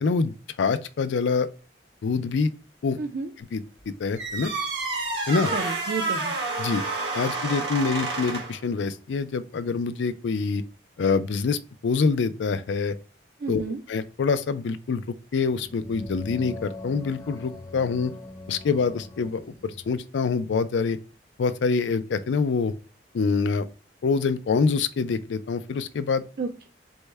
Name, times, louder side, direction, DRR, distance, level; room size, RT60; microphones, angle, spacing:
voice 1, 0.0-1.5 2.0-2.5 2.8-3.0 3.5-3.6 3.9-4.5 5.3-5.5 6.6-6.8 7.1-10.6 11.0-13.0 13.5-13.6 13.9-15.0 15.3-18.1 18.5-21.0 21.4-22.7 23.1-23.7 24.0-26.2, left 5 dB, 85° left, 0.4 m, -25 dB
voice 2, 3.0-3.3 5.5-6.3 13.4-13.8 26.4-26.7, right 4 dB, 55° right, 0.4 m, -31 dB
sound 1, 4.2-8.6, right 3 dB, 75° right, 1.4 m, -29 dB
sound 2, 15.5-20.0, left 2 dB, 20° left, 0.6 m, -41 dB
4.4 x 2.1 x 3.2 m
head